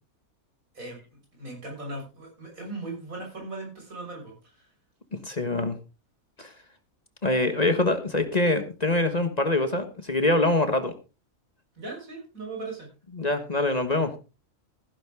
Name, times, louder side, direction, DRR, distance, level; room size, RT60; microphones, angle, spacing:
voice 1, 1.4-4.6 11.8-12.9, right 2 dB, 85° right, 0 dB, 6.7 m, -38 dB
voice 2, 5.1-5.7 6.4-6.5 7.2-10.9 13.1-14.1, left 2 dB, 30° left, 9 dB, 1.5 m, -24 dB
15.5 x 10.5 x 3.7 m, 0.30 s
omnidirectional pair, 1.4 m